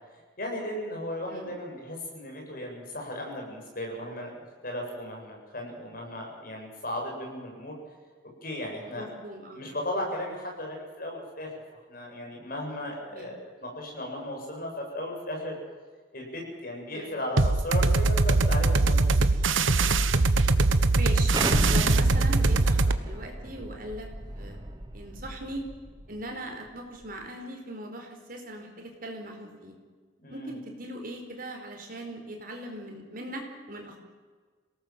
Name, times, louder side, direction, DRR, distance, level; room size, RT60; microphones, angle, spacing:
voice 1, 0.4-7.7 8.4-9.1 9.5-11.5 11.9-15.6 16.1-19.1 30.2-30.6, left 1 dB, 45° left, 0 dB, 7.7 m, -36 dB
voice 2, 9.0-9.6 13.1-13.3 16.9-17.1 20.9-24.1 24.3-24.6 24.9-25.6 26.1-29.8 30.3-34.0, right 1 dB, 45° right, 3 dB, 4.6 m, -39 dB
sound 1, 17.4-23.0, right 3 dB, 85° right, 1.1 m, -22 dB
Explosion, 21.3-26.0, right 1 dB, 20° right, 1.3 m, -33 dB
26.5 x 18.5 x 7.8 m, 1.5 s
head